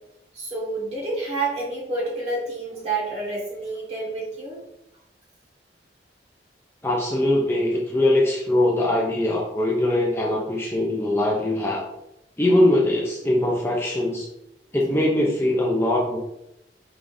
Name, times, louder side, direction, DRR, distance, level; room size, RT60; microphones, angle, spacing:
voice 1, 0.3-4.6, right 3 dB, 35° right, -5 dB, 1.6 m, -29 dB
voice 2, 6.8-11.8 12.4-14.3 14.7-16.2, left 1 dB, 15° left, -2 dB, 0.5 m, -21 dB
4.7 x 3.6 x 2.6 m, 0.85 s
head